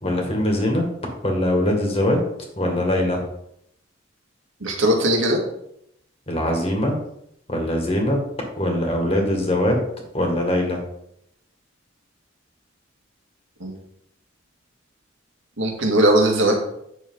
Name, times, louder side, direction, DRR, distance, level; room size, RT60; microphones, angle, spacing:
voice 1, 0.0-0.9 1.2-2.2 2.6-3.2 6.3-6.9 7.5-8.2 8.6-9.8 10.1-10.8, left 1 dB, 30° left, 1 dB, 2.1 m, -22 dB
voice 2, 4.6-5.4 13.6-13.7 15.6-16.6, right 1 dB, 90° right, 1 dB, 2.2 m, -19 dB
9.5 x 6.6 x 3.9 m, 0.75 s
head